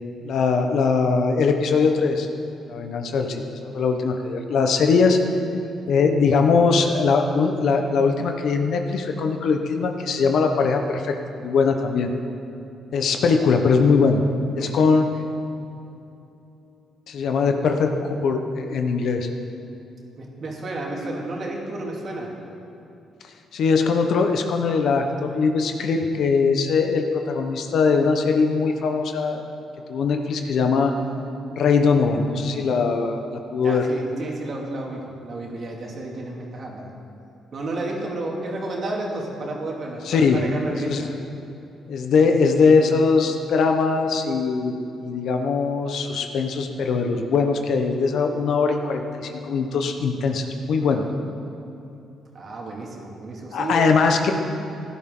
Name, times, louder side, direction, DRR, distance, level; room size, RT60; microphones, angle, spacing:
voice 1, 0.2-2.3 2.7-5.2 5.9-12.1 12.9-14.2 14.6-15.1 17.1-19.3 23.5-29.4 29.9-30.9 31.5-33.8 40.0-40.4 40.8-41.1 41.9-51.0 53.5-54.3, left 4 dB, 70° left, 5 dB, 1.1 m, -21 dB
voice 2, 14.6-14.9 20.2-22.3 33.6-36.9 37.5-41.1 52.3-53.9, right 2 dB, 50° right, -2 dB, 2.7 m, -31 dB
17.0 x 11.5 x 3.9 m, 2.8 s
cardioid pair, 90°, 0 cm